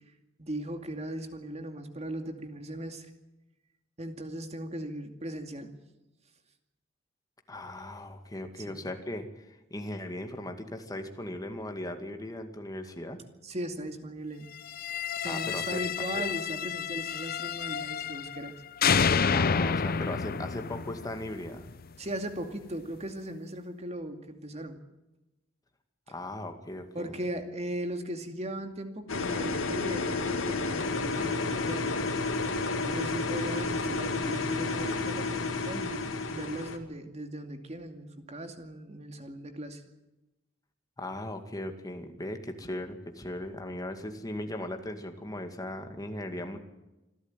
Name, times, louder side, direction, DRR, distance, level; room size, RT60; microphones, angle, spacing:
voice 1, 0.4-3.1 4.0-5.7 8.6-8.8 13.4-14.5 15.2-18.5 22.0-24.8 26.9-32.0 32.4-32.5 32.8-39.8, right 1 dB, 35° right, 6 dB, 2.4 m, -38 dB
voice 2, 7.5-13.2 15.2-15.8 16.1-16.3 19.3-21.7 26.1-27.1 41.0-46.6, left 1 dB, 20° left, 5 dB, 2.2 m, -38 dB
sound 1, 14.7-18.5 18.8-21.8, left 6 dB, 50° left, 0.7 m, -29 dB
sound 2, 29.1-36.8, left 3 dB, 85° left, 2.5 m, -31 dB
26.5 x 13.0 x 9.2 m, 0.99 s
head